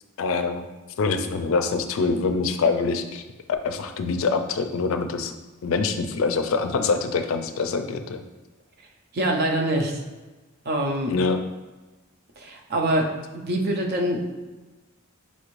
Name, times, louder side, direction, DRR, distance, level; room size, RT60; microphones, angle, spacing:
voice 1, 0.2-0.6 1.0-3.2 3.6-5.3 5.6-8.2 11.1-11.4, left 4 dB, 70° left, 7 dB, 0.4 m, -24 dB
voice 2, 9.1-10.0 10.7-11.2 12.4-14.2, right 1 dB, 50° right, 2 dB, 0.6 m, -25 dB
5.3 x 2.5 x 3.1 m, 1.2 s
head